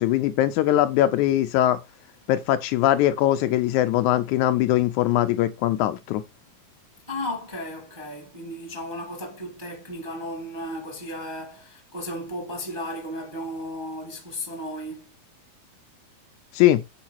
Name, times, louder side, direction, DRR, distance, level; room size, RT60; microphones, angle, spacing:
voice 1, 0.0-1.8 2.3-6.2 16.5-16.8, left 13 dB, 80° left, 1.9 m, -21 dB
voice 2, 7.1-15.1, left 1 dB, 10° right, 1.2 m, -34 dB
7.2 x 4.8 x 4.5 m
omnidirectional pair, 3.6 m